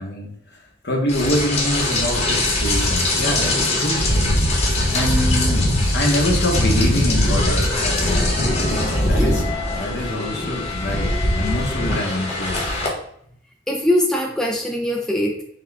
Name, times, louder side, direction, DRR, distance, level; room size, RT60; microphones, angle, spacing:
voice 1, 0.0-4.4 4.9-8.5 9.1-9.4 9.7-12.9, left 1 dB, 60° left, 1 dB, 1.0 m, -25 dB
Rain, 1.1-12.9, left 1 dB, 35° left, 1.0 m, -21 dB
voice 2, 13.7-15.4, left 1 dB, 5° left, -1 dB, 0.4 m, -21 dB
5.9 x 2.3 x 3.4 m, 0.68 s
head